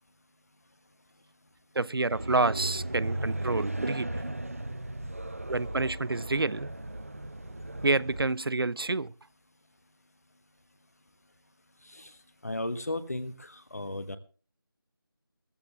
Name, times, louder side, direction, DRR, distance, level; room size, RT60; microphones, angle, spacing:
voice 1, 1.8-4.1 5.5-6.7 7.8-9.1, right 3 dB, 80° right, 0.7 m, -28 dB
sound 1, 2.1-8.2, right 1 dB, 40° right, 0.7 m, -36 dB
voice 2, 12.4-14.2, left 1 dB, 40° left, 1.4 m, -35 dB
16.5 x 14.5 x 3.4 m
figure-of-eight pair, 180°, 12 cm